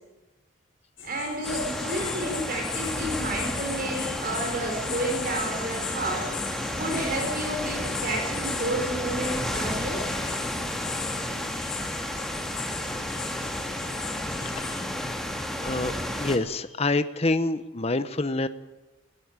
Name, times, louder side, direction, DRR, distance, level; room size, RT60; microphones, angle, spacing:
sound 1, 1.0-14.8, left 7 dB, 65° left, 6.9 m, -38 dB
voice 1, 1.0-10.1, right 1 dB, 45° right, 2 dB, 4.8 m, -31 dB
sound 2, 1.4-16.4, left 1 dB, ahead, 2.2 m, -32 dB
voice 2, 14.4-14.8 15.6-18.5, left 2 dB, 30° left, 12 dB, 0.8 m, -27 dB
19.0 x 17.5 x 9.5 m, 1.1 s
head